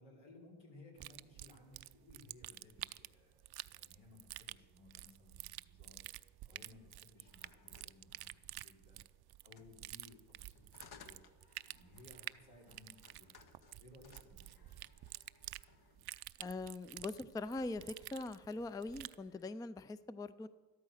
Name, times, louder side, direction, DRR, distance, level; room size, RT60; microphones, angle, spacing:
voice 1, 0.0-9.0 9.4-11.2 11.6-14.8, left 2 dB, 80° left, -2 dB, 4.8 m, -61 dB
sound 1, 1.0-19.2, right 15 dB, 65° right, 0.5 m, -50 dB
sound 2, 7.2-8.8 9.5-16.1 16.8-17.3 17.6-19.6, left 5 dB, 60° left, 1.3 m, -64 dB
voice 2, 16.4-20.5, left 2 dB, 10° left, 15 dB, 0.4 m, -42 dB
13.0 x 12.5 x 6.5 m, 1.4 s
cardioid pair, 95°, 42 cm